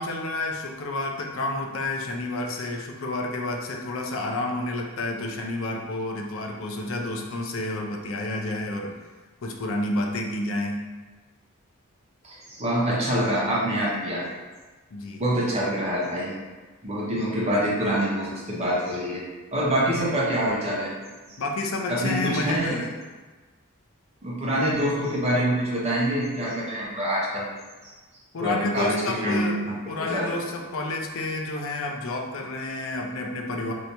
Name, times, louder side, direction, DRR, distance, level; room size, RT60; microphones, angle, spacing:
voice 1, 0.0-8.9 9.4-10.8 14.9-15.2 21.4-22.9 28.3-29.6 29.9-33.7, left 2 dB, 65° left, 1 dB, 0.5 m, -30 dB
voice 2, 12.2-14.3 15.2-16.3 16.8-19.2 19.5-21.0 21.9-22.8 24.2-27.5 27.8-28.0 28.4-29.5 30.0-30.3, equal, 30° right, -6 dB, 0.7 m, -25 dB
3.3 x 2.7 x 2.8 m, 1.3 s
head